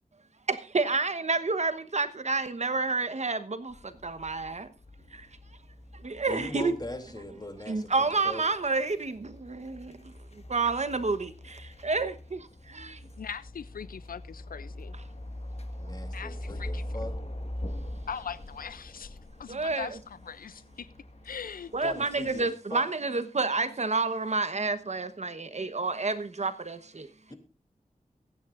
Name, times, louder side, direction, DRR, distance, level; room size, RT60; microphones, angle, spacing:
voice 1, 0.5-3.7 4.0-4.7 6.0-6.7 7.7-10.0 10.5-12.4 12.7-13.0 19.5-19.9 21.7-27.1, right 3 dB, 50° right, 1.1 m, -29 dB
sound 1, 3.7-22.4, left 1 dB, 45° left, 1.8 m, -43 dB
voice 2, 6.3-8.4 15.8-17.2 21.8-22.8, left 1 dB, 30° left, 2.8 m, -40 dB
voice 3, 13.2-14.9 16.1-16.8 18.1-20.9 21.2-21.7, left 7 dB, 80° left, 0.5 m, -40 dB
22.5 x 9.7 x 2.5 m
wide cardioid pair, 65°, 14 cm